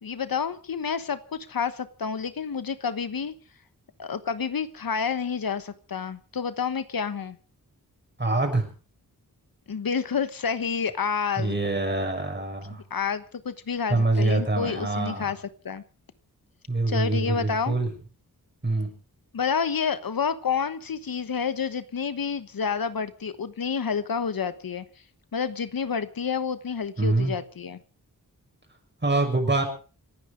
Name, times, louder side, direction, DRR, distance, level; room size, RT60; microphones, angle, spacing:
voice 1, 0.0-3.3 4.0-7.4 9.7-11.6 12.9-15.4 15.6-15.8 16.9-17.8 19.3-24.8 25.3-27.8, left 6 dB, 70° left, 12 dB, 1.2 m, -29 dB
voice 2, 8.2-8.7 11.4-12.8 13.9-15.3 16.7-17.9 18.6-18.9 27.0-27.3 29.0-29.6, right 2 dB, 30° right, 4 dB, 6.5 m, -25 dB
27.5 x 9.9 x 5.1 m, 0.38 s
wide cardioid pair, 85°, 36 cm